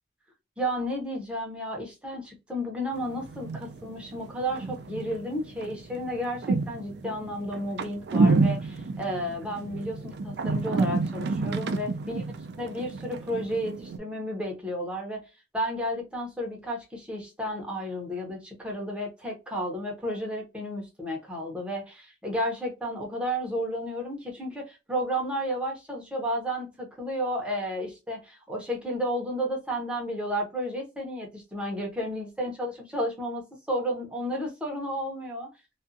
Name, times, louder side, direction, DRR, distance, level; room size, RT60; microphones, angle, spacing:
voice 1, 0.6-12.2 12.6-15.2 15.5-35.5, equal, 5° right, 0.8 m, -32 dB
sound 1, 3.0-14.0, right 3 dB, 55° right, 0.3 m, -30 dB
2.5 x 2.3 x 2.5 m
head